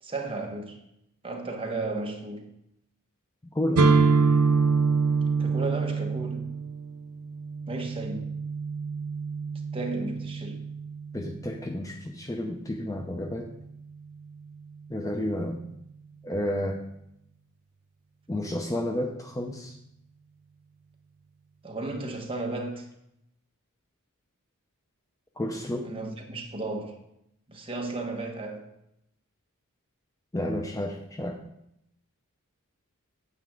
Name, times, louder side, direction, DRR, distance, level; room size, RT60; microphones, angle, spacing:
voice 1, 0.0-0.8 1.2-2.4 5.4-6.5 7.7-8.3 9.7-10.6 21.6-22.9 25.8-27.0 27.5-28.7, right 2 dB, 25° right, 1.3 m, -34 dB
sound 1, 3.8-11.5, right 4 dB, 90° right, 0.7 m, -26 dB
voice 2, 11.1-13.5 14.9-15.6 16.2-16.8 18.3-19.7 25.4-25.9 30.3-31.4, left 1 dB, 15° left, 0.6 m, -31 dB
9.2 x 8.0 x 3.7 m
head